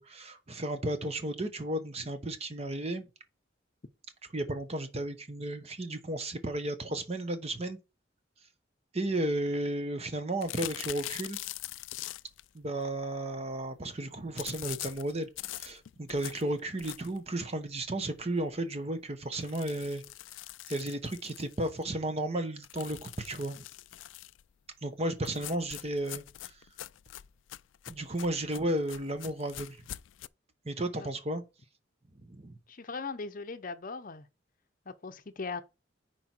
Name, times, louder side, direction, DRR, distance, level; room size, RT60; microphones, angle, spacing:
voice 1, 0.0-3.1 4.3-7.8 8.9-11.4 12.5-20.0 20.7-23.6 24.8-26.7 27.9-29.8 30.6-31.4 32.1-32.6, right 1 dB, 35° right, 1.1 m, -34 dB
sound 1, 10.4-12.5 14.4-17.3 17.7-17.8 18.2-18.3 18.6-18.7 19.3-21.8 22.6-24.4 25.2-30.3, left 15 dB, 85° left, 0.4 m, -43 dB
voice 2, 32.7-34.3 34.9-35.6, left 4 dB, 45° left, 0.7 m, -39 dB
9.7 x 4.7 x 4.5 m
head